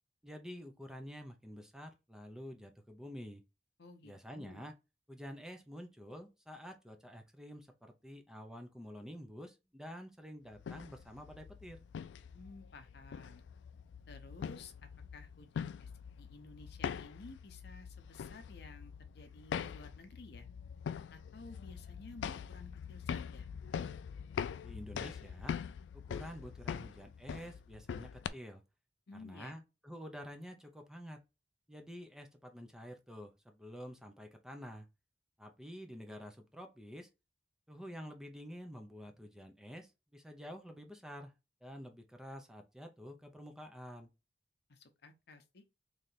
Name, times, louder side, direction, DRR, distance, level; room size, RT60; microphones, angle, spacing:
voice 1, 0.2-3.4 4.0-4.8 5.1-11.8 24.6-25.5 25.9-28.6 29.1-31.2 31.7-34.9 35.4-37.1 37.7-41.3 41.6-44.1, equal, 5° right, 0.6 m, -49 dB
voice 2, 3.8-4.7 12.3-13.4 14.1-15.9 16.2-20.5 21.1-23.5 29.1-29.6 44.7-45.6, left 3 dB, 65° left, 0.7 m, -54 dB
sound 1, 10.5-28.3, left 7 dB, 90° left, 0.3 m, -43 dB
3.2 x 2.8 x 4.0 m
head